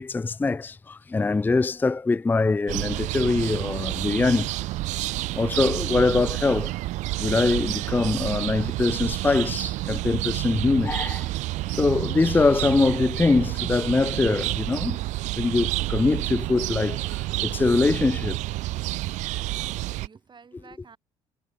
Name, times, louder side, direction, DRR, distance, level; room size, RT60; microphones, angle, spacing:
voice 1, 0.0-4.5 5.3-6.7 7.2-11.3 11.6-15.0 15.4-18.4, left 3 dB, 15° left, 0.4 m, -23 dB
sound 1, 2.7-20.1, right 18 dB, 80° right, 0.7 m, -29 dB
voice 2, 18.9-21.0, right 5 dB, 40° right, 4.4 m, -53 dB
supercardioid pair, 70°, 12 cm